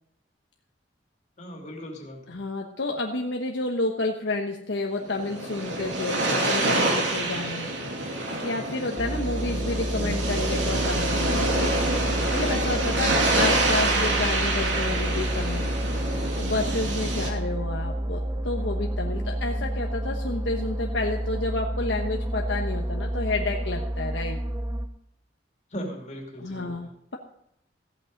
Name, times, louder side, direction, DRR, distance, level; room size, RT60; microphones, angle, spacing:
voice 1, 1.4-2.2 25.7-26.7, equal, 40° left, 1 dB, 2.7 m, -37 dB
voice 2, 2.3-7.7 8.4-11.7 12.3-15.7 16.4-24.4 26.4-27.2, left 2 dB, 80° left, 1 dB, 1.2 m, -30 dB
sound 1, 5.0-17.3, right 2 dB, 90° right, 2.6 m, -26 dB
sound 2, 9.0-24.9, right 1 dB, 20° right, 0.8 m, -29 dB
15.0 x 8.6 x 5.3 m, 0.77 s
head